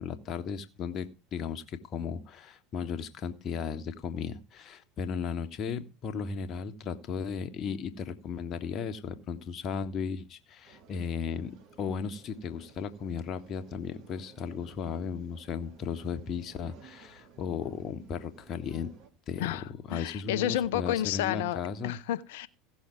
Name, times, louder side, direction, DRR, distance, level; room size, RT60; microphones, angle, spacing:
voice 1, 0.0-11.5 11.8-18.9 19.3-19.5 19.9-22.0, left 6 dB, 40° left, 1.3 m, -35 dB
sound 1, 10.6-19.1, right 5 dB, 50° right, 1.9 m, -56 dB
voice 2, 19.4-22.5, left 12 dB, 60° left, 0.6 m, -31 dB
16.5 x 6.4 x 4.6 m
figure-of-eight pair, 75°, 0 cm